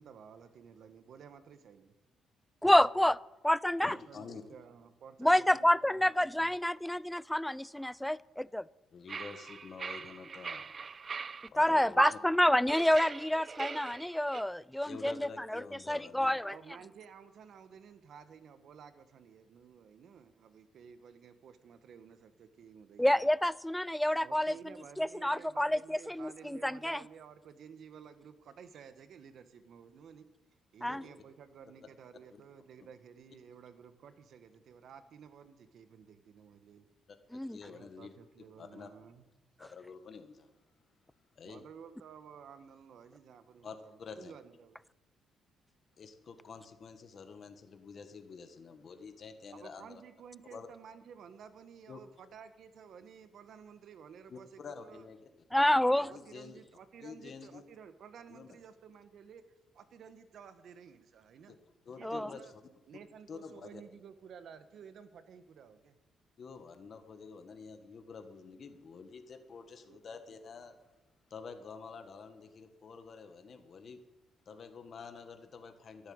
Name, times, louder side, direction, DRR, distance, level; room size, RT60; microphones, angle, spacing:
voice 1, 0.0-1.9 3.9-6.6 16.5-23.3 24.2-30.3 30.7-36.9 37.6-39.3 41.4-44.8 49.5-55.1 55.5-59.4 59.7-61.6 62.0-62.5 62.9-66.0 69.9-70.0 70.3-70.4 73.9-74.0 74.5-74.6, right 7 dB, 65° right, 10 dB, 1.5 m, -53 dB
voice 2, 2.6-3.2 3.4-4.0 5.2-8.7 11.6-16.5 23.0-24.5 25.0-27.0 30.8-31.0 37.3-37.6 55.5-56.1 62.0-62.3, left 1 dB, 5° left, 21 dB, 0.4 m, -28 dB
voice 3, 3.8-4.4 8.9-10.8 11.5-12.2 14.8-16.4 30.9-31.1 37.1-38.1 38.6-38.9 39.6-40.5 41.3-41.6 43.6-44.3 46.0-50.0 50.5-50.7 51.9-52.0 54.3-55.2 55.9-56.6 57.0-57.6 58.3-58.6 61.5-61.6 61.8-62.5 63.3-63.8 66.4-70.8 71.3-74.0 74.4-76.1, left 5 dB, 50° left, 7 dB, 1.7 m, -48 dB
sound 1, 9.1-11.5 12.0-12.1 12.7-14.4, right 5 dB, 40° right, 0.5 m, -39 dB
12.0 x 11.5 x 8.9 m, 1.0 s
cardioid pair, 90°, 0 cm